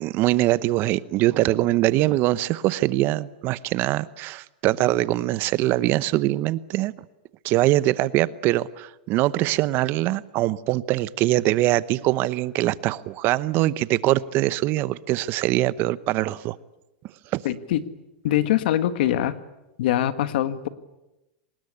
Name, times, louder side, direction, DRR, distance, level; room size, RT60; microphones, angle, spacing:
voice 1, 0.0-6.9 7.4-16.6 17.3-17.4, right 16 dB, 40° right, 18 dB, 0.8 m, -23 dB
voice 2, 17.4-17.8 18.2-19.3 19.8-20.7, left 12 dB, 70° left, 12 dB, 1.8 m, -23 dB
25.0 x 20.0 x 9.9 m, 0.98 s
supercardioid pair, 135°, 5 cm